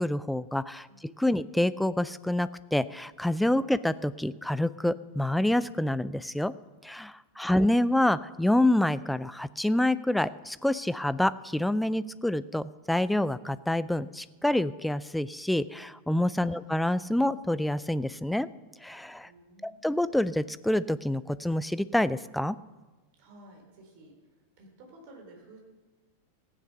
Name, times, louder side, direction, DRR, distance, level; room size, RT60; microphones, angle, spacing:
voice 1, 0.0-6.5 6.8-18.5 18.8-19.3 19.6-22.6, left 1 dB, 5° left, 17 dB, 0.4 m, -27 dB
voice 2, 0.9-1.4 7.3-7.5 16.4-16.6 19.2-19.9 23.2-25.6, right 1 dB, 50° right, 1 dB, 3.6 m, -54 dB
15.5 x 10.0 x 5.6 m, 1.2 s
figure-of-eight pair, 90°, 0 cm